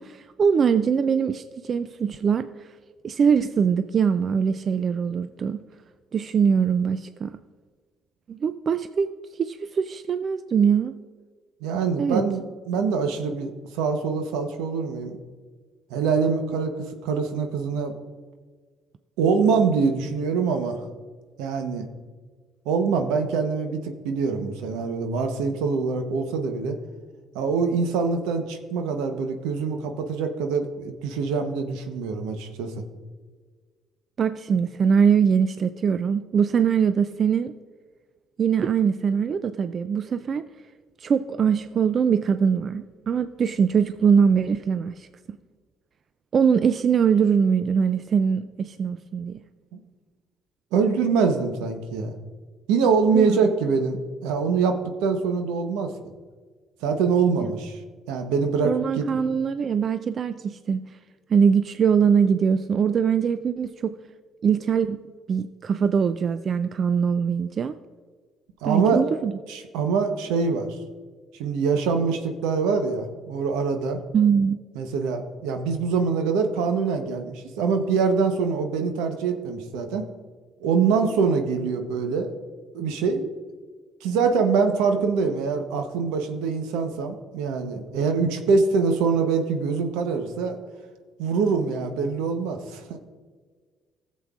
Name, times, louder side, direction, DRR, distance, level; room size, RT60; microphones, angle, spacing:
voice 1, 0.0-2.5 3.0-5.6 6.1-7.4 8.3-9.1 9.4-11.0 12.0-12.2 34.2-37.5 38.4-40.5 41.0-45.1 46.3-49.4 53.1-53.4 57.4-57.5 58.6-60.8 61.3-63.9 64.4-65.0 65.3-67.8 68.6-69.3 74.1-74.6, right 6 dB, 50° right, 11 dB, 0.3 m, -22 dB
voice 2, 11.6-15.2 15.9-16.7 17.0-17.9 19.2-20.8 21.4-21.9 22.7-26.8 27.3-32.7 49.7-49.8 50.7-52.2 52.7-55.9 56.8-57.8 58.1-59.1 68.6-69.0 69.5-70.8 71.4-74.0 74.7-80.1 80.6-82.3 82.7-83.3 84.0-90.6 91.2-93.0, right 5 dB, 85° right, 6 dB, 0.9 m, -24 dB
15.0 x 7.4 x 2.4 m, 1.5 s
supercardioid pair, 60°, 0 cm